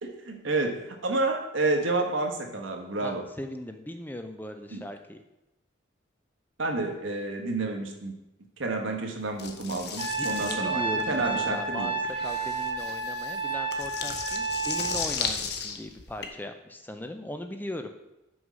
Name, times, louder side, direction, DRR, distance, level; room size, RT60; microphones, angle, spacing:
voice 1, 0.0-3.2 4.7-4.8 6.6-8.1 8.6-10.8 11.1-11.9, right 2 dB, 80° right, 3 dB, 1.3 m, -29 dB
voice 2, 3.0-5.2 10.2-17.9, left 1 dB, 10° left, 7 dB, 0.4 m, -38 dB
sound 1, 9.4-16.3, left 6 dB, 55° left, 0.9 m, -35 dB
Trumpet, 10.0-15.0, right 3 dB, 25° right, 0.9 m, -31 dB
6.3 x 5.4 x 6.1 m, 0.94 s
head